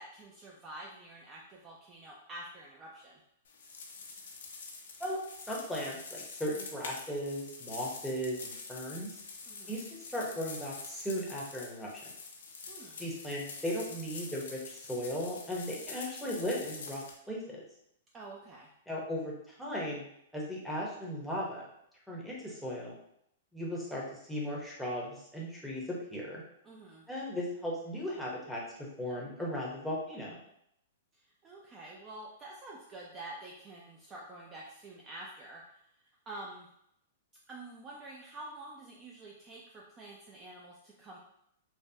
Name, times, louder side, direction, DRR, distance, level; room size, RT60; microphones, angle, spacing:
voice 1, 0.0-3.2 9.5-9.8 12.7-13.0 18.1-18.7 26.6-27.0 31.1-35.8 36.3-36.7 37.5-41.2, right 2 dB, 20° right, -2 dB, 0.4 m, -48 dB
sound 1, 3.5-17.1, left 4 dB, 80° left, 0.6 m, -46 dB
voice 2, 5.5-9.2 9.7-11.9 13.0-17.6 18.9-20.0 20.3-21.7 22.1-22.9 23.5-24.0 24.3-26.4 27.1-30.4, equal, ahead, -5 dB, 0.7 m, -37 dB
3.3 x 2.1 x 2.7 m, 0.75 s
hypercardioid pair, 145°, 0 cm